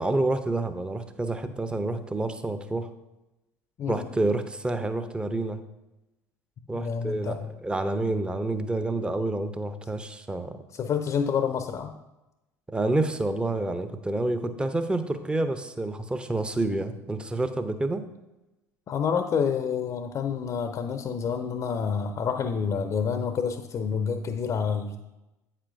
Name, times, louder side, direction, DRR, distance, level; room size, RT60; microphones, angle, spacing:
voice 1, 0.0-2.9 3.9-5.6 6.7-10.6 12.7-18.0, right 2 dB, 10° right, 10 dB, 0.6 m, -28 dB
voice 2, 6.7-7.4 10.7-11.9 18.9-25.0, left 6 dB, 40° left, 8 dB, 0.6 m, -28 dB
8.4 x 7.4 x 2.6 m, 0.98 s
figure-of-eight pair, 65°, 9 cm